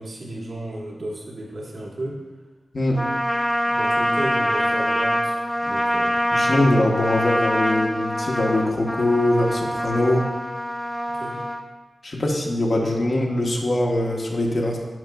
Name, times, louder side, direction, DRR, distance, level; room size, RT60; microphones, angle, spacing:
voice 1, 0.0-2.2 3.6-6.2 11.1-11.4 12.7-12.9, right 1 dB, 65° right, -3 dB, 1.3 m, -33 dB
Trumpet, 2.9-11.6, equal, 5° left, 0.6 m, -24 dB
voice 2, 6.3-10.3 12.0-14.8, left 1 dB, 50° left, -1 dB, 1.0 m, -22 dB
11.0 x 5.1 x 2.3 m, 1.2 s
wide cardioid pair, 90°, 0 cm